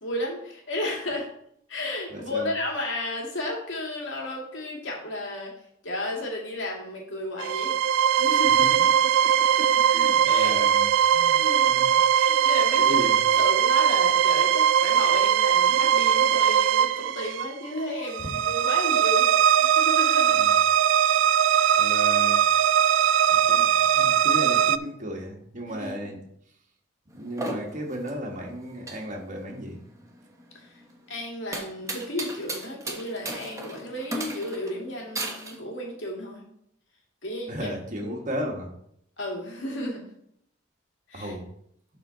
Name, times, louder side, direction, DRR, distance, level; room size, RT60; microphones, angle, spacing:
voice 1, 0.0-1.3 1.7-5.5 5.8-7.8 8.1-9.1 10.2-10.6 11.0-11.8 12.1-13.1 13.3-19.3 19.6-20.5 21.5-21.8 25.7-26.1 30.5-30.7 31.1-36.4 37.2-37.7 38.0-38.2 39.2-40.0 41.1-41.3, left 1 dB, 75° left, -1 dB, 2.3 m, -33 dB
voice 2, 2.1-2.5 8.6-8.8 9.6-11.8 12.8-13.2 18.2-18.3 20.3-20.6 21.8-22.4 23.3-23.7 23.9-26.2 27.1-29.8 37.5-38.7 41.1-41.4, equal, 40° right, 0 dB, 1.6 m, -35 dB
sound 1, 7.4-24.8, right 9 dB, 75° right, 0.3 m, -20 dB
sound 2, 27.1-35.6, right 2 dB, 15° right, 1.1 m, -36 dB
11.0 x 4.4 x 4.0 m, 0.72 s
head